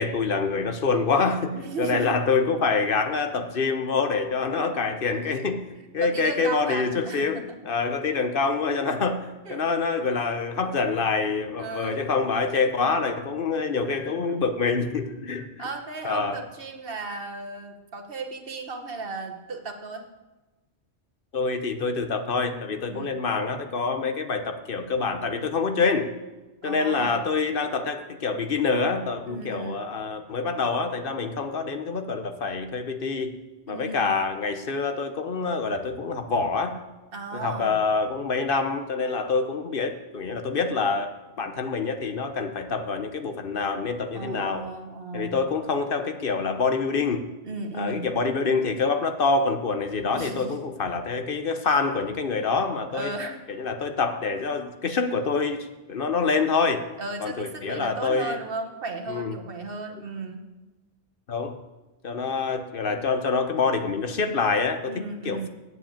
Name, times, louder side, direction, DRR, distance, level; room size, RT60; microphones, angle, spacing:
voice 1, 0.0-5.6 5.9-9.2 9.5-15.4 16.0-16.4 21.3-26.1 26.6-33.3 33.7-36.8 37.3-41.1 41.4-44.7 45.1-47.2 47.8-53.1 53.6-56.8 57.2-58.4 59.1-59.4 61.3-61.6 62.0-65.5, left 4 dB, 55° left, 7 dB, 1.0 m, -26 dB
voice 2, 1.6-2.2 4.1-4.2 4.6-4.7 5.1-5.4 5.8-7.6 8.8-9.0 9.4-9.6 11.6-12.0 15.6-20.1 22.9-23.2 26.6-27.3 29.3-29.8 33.7-34.1 37.1-37.8 44.1-45.4 47.4-48.1 50.1-50.6 52.4-52.6 52.9-53.4 57.0-60.4 64.9-65.5, right 3 dB, 60° right, 4 dB, 1.4 m, -35 dB
8.0 x 7.7 x 8.7 m, 1.1 s
omnidirectional pair, 1.1 m